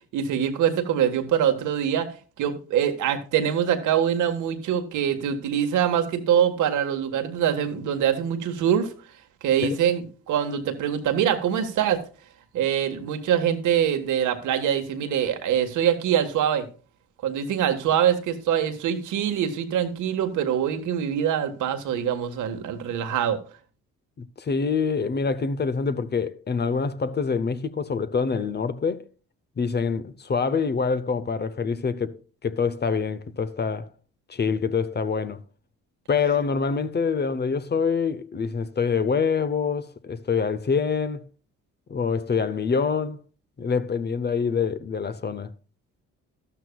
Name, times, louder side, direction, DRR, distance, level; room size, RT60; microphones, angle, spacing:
voice 1, 0.1-2.1 2.4-8.9 9.4-12.0 12.5-16.7 17.2-23.4, right 9 dB, 85° right, 1.6 m, -24 dB
voice 2, 24.2-29.0 29.6-33.9 34.3-35.4 36.1-41.2 41.9-43.2 43.6-45.5, left 5 dB, 35° left, 0.8 m, -25 dB
12.5 x 12.5 x 2.3 m
cardioid pair, 90°, 30 cm